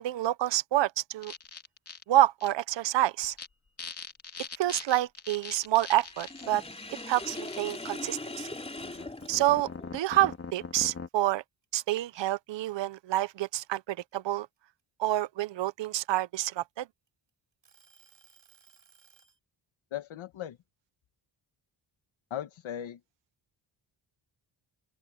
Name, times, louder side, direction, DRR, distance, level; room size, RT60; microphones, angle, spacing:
voice 1, 0.0-1.3 2.1-3.3 4.6-6.6 7.1-8.5 9.3-11.4 11.7-14.5 15.0-16.8, right 14 dB, 65° right, 0.7 m, -28 dB
sound 1, 1.2-2.0 2.4-2.5 3.2-3.5 3.8-7.9 8.8-11.1, left 5 dB, 30° left, 2.8 m, -42 dB
Sink (filling or washing), 6.1-10.0, left 2 dB, 10° left, 3.6 m, -40 dB
sound 2, 9.2-10.1 10.5-12.3 12.8-13.0 13.4-15.3 16.0-17.1 17.6-19.4, right 7 dB, 40° right, 6.1 m, -62 dB
voice 2, 19.9-20.6 22.3-23.0, left 11 dB, 75° left, 1.7 m, -37 dB
open air
wide cardioid pair, 165°, 48 cm